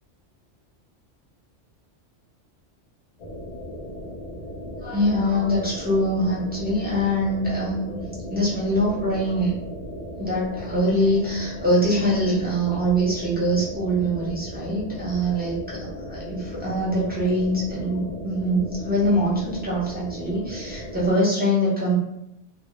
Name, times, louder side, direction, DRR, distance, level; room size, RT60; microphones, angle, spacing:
sound 1, 3.2-21.1, equal, 75° left, 0.3 m, -37 dB
voice 1, 4.8-8.0 8.3-9.5 10.2-21.9, equal, 10° right, -7 dB, 0.4 m, -23 dB
2.0 x 2.0 x 3.0 m, 0.84 s
omnidirectional pair, 1.2 m